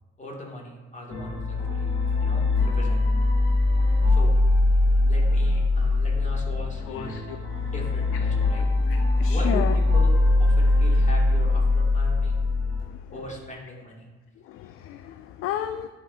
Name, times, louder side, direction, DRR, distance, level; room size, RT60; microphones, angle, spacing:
voice 1, 0.2-3.0 4.1-4.3 5.1-7.1 7.6-8.7 9.3-10.1 10.4-12.4 13.1-14.1, left 1 dB, 20° left, -2 dB, 2.3 m, -39 dB
sound 1, 1.1-12.8, left 2 dB, 80° left, 1.9 m, -22 dB
voice 2, 6.9-7.4 7.6-7.7 8.6-9.7 12.9-13.0 14.4-15.9, left 10 dB, 40° left, 9 dB, 0.4 m, -33 dB
11.0 x 4.8 x 2.7 m, 1.3 s
figure-of-eight pair, 50°, 35 cm